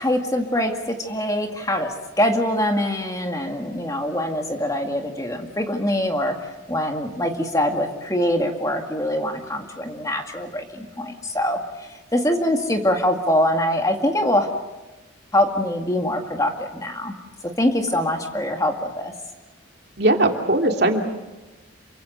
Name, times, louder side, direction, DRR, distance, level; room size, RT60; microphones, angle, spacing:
voice 1, 0.0-6.4 6.7-14.5 15.3-17.2 17.4-19.1, left 1 dB, 15° left, 4 dB, 2.1 m, -23 dB
voice 2, 20.0-21.1, right 2 dB, 55° right, 3 dB, 2.8 m, -19 dB
28.5 x 24.5 x 6.7 m, 1.1 s
head